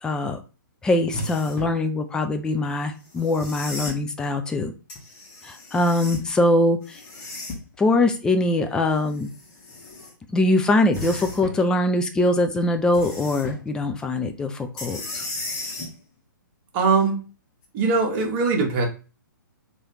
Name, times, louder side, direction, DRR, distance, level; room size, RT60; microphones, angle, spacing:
voice 1, 0.0-0.4 0.8-4.7 5.4-7.0 7.8-9.3 10.3-15.3, left 2 dB, 5° left, 6 dB, 0.4 m, -22 dB
sound 1, 1.1-1.8 3.1-4.0 4.9-6.3 6.8-7.8 8.9-10.1 10.9-11.6 12.9-13.6 14.8-15.9 17.6-17.7, left 2 dB, 25° left, 1.2 m, -35 dB
voice 2, 16.7-17.2 17.7-18.9, right 4 dB, 35° right, 0 dB, 1.3 m, -21 dB
3.1 x 2.7 x 4.5 m, 0.34 s
figure-of-eight pair, 125°, 11 cm